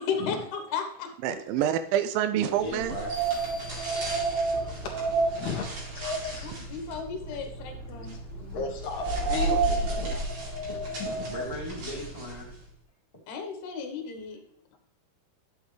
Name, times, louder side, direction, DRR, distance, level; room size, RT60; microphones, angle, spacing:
voice 1, 0.0-1.1 6.6-8.1 13.3-14.4, left 6 dB, 80° left, 5 dB, 3.4 m, -34 dB
voice 2, 1.2-2.9, right 11 dB, 80° right, 9 dB, 2.1 m, -27 dB
voice 3, 2.3-3.2 8.3-8.5 10.7-10.8 11.2-12.5 13.1-13.2, left 1 dB, 15° left, -4 dB, 3.5 m, -38 dB
sound 1, 2.6-12.6, right 3 dB, 45° right, 3.7 m, -31 dB
sound 2, 3.1-4.9, equal, 30° right, 1.9 m, -45 dB
voice 4, 3.4-6.5 7.0-10.2 11.0-11.3, left 5 dB, 60° left, 0 dB, 2.9 m, -38 dB
11.0 x 7.3 x 3.3 m, 0.69 s
omnidirectional pair, 4.5 m